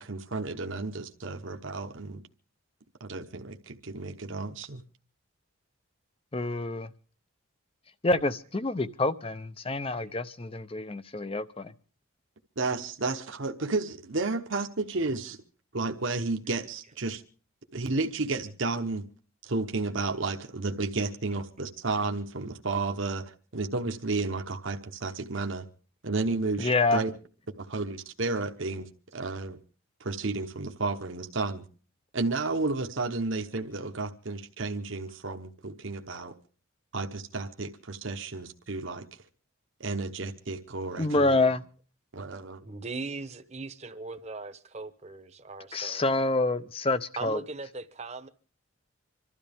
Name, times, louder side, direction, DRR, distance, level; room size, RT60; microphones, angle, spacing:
voice 1, 0.0-2.2 3.0-4.8 12.6-15.4 15.7-17.2 17.7-19.0 19.4-25.6 26.0-27.1 27.6-29.6 30.0-31.6 32.1-36.3 36.9-39.2 39.8-41.5 42.1-42.6, right 3 dB, 60° right, 1.0 m, -32 dB
voice 2, 6.3-6.9 8.0-11.7 26.6-27.0 41.0-41.6 45.7-47.4, left 2 dB, 25° left, 0.6 m, -27 dB
voice 3, 42.6-46.2 47.2-48.3, right 3 dB, 30° right, 0.9 m, -39 dB
26.5 x 13.0 x 3.5 m
head